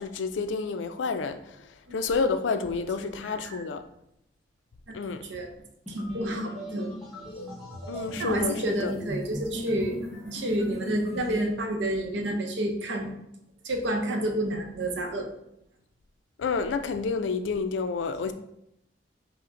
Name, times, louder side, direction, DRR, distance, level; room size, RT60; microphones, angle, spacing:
voice 1, 0.0-3.8 4.9-5.2 7.9-9.0 16.4-18.3, left 4 dB, 85° left, 9 dB, 0.4 m, -29 dB
sound 1, 5.9-11.4, left 1 dB, ahead, 1.6 m, -37 dB
voice 2, 5.9-7.0 8.2-10.0 10.3-13.1 13.6-15.3, right 1 dB, 75° right, 4 dB, 0.7 m, -29 dB
5.6 x 2.1 x 3.7 m, 0.80 s
head